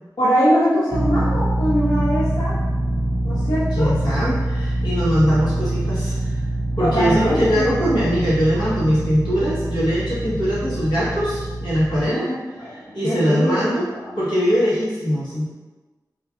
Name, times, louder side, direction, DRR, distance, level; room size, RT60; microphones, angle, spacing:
voice 1, 0.2-2.5 3.2-3.9 6.8-7.8 12.0-14.1, equal, 65° left, -10 dB, 0.6 m, -22 dB
sound 1, 0.9-12.0, right 1 dB, 15° right, 0.4 m, -24 dB
voice 2, 3.8-6.4 6.8-12.3 12.6-13.8 14.2-15.4, equal, 90° left, -10 dB, 1.1 m, -21 dB
3.0 x 2.4 x 2.4 m, 1.2 s
wide cardioid pair, 75°, 7 cm